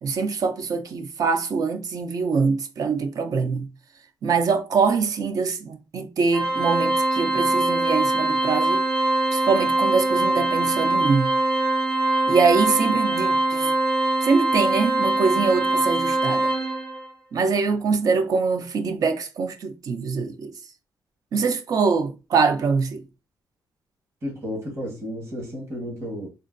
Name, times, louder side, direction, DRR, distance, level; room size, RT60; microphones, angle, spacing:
voice 1, 0.0-3.7 4.2-8.8 9.3-11.3 12.3-13.7 14.2-16.5 17.3-20.5 21.3-23.0, right 5 dB, 60° right, 0.5 m, -23 dB
Organ, 6.3-17.1, right 2 dB, 90° right, 0.8 m, -23 dB
voice 2, 24.2-26.3, equal, 35° right, 1.3 m, -32 dB
3.7 x 2.2 x 2.5 m
cardioid pair, 130°, 7 cm